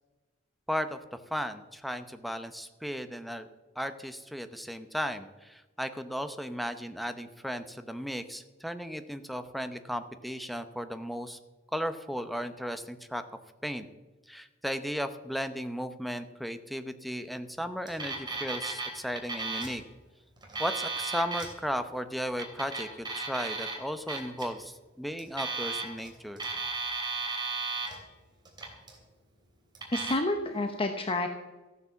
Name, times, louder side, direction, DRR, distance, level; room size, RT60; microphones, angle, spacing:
voice 1, 0.7-1.0 1.3-3.5 3.8-11.4 11.7-13.2 13.6-13.9 14.3-19.8 20.6-26.4, equal, ahead, 9 dB, 0.7 m, -35 dB
Alarm, 17.9-18.9 19.2-19.8 20.4-21.5 22.3-23.7 24.1-24.4 25.2-26.1 26.4-28.0 28.5-29.0 29.7-30.1, right 4 dB, 25° right, 3.1 m, -34 dB
voice 2, 29.9-31.3, left 2 dB, 30° left, 6 dB, 0.9 m, -29 dB
14.5 x 9.6 x 7.0 m, 1.2 s
head